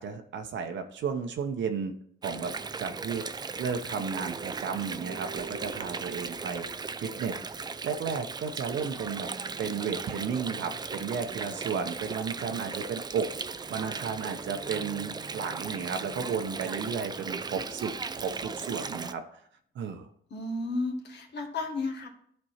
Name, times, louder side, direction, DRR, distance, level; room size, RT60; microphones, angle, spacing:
voice 1, 0.0-1.9 2.2-6.7 7.0-9.3 9.6-13.3 13.7-19.2 19.7-20.1, right 6 dB, 70° right, 5 dB, 0.9 m, -33 dB
Water, 2.2-19.1, right 4 dB, 20° right, 0.4 m, -37 dB
voice 2, 20.3-22.1, left 3 dB, 60° left, 3 dB, 1.6 m, -33 dB
11.0 x 4.4 x 4.3 m, 0.65 s
cardioid pair, 90°, 20 cm